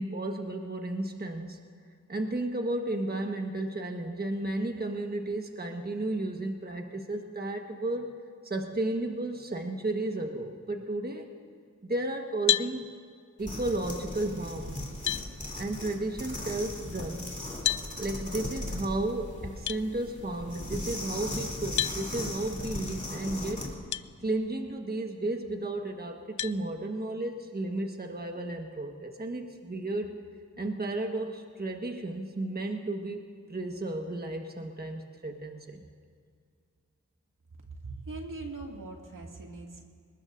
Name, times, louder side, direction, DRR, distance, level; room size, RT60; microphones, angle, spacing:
voice 1, 0.0-1.6 2.1-8.2 8.4-11.3 11.8-12.9 13.4-14.9 15.6-17.3 18.0-23.7 24.2-30.2 30.6-35.8, right 2 dB, 30° right, 3 dB, 1.3 m, -33 dB
sound 1, 12.5-12.7 14.4-14.5 15.1-15.3 17.6-17.9 19.7-19.8 21.8-22.0 23.9-24.1 24.7-24.8 26.4-26.6, left 10 dB, 70° left, 0.5 m, -28 dB
sound 2, 13.4-23.8, left 1 dB, 25° left, 3.1 m, -38 dB
voice 2, 37.8-39.8, right 3 dB, 85° right, 0 dB, 2.3 m, -41 dB
28.5 x 19.5 x 2.6 m, 2.2 s
wide cardioid pair, 70°, 31 cm